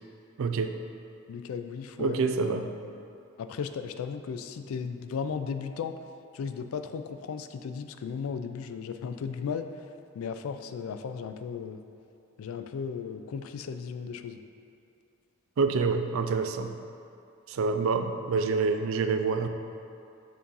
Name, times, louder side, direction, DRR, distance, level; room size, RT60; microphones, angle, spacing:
voice 1, 0.4-0.8 2.0-2.7 15.6-16.8 17.5-19.5, right 4 dB, 60° right, 8 dB, 0.3 m, -27 dB
voice 2, 1.3-3.0 3.4-6.0 6.3-9.7 10.1-11.8 12.4-14.4, left 6 dB, 65° left, 9 dB, 0.3 m, -36 dB
7.0 x 2.5 x 5.4 m, 2.6 s
head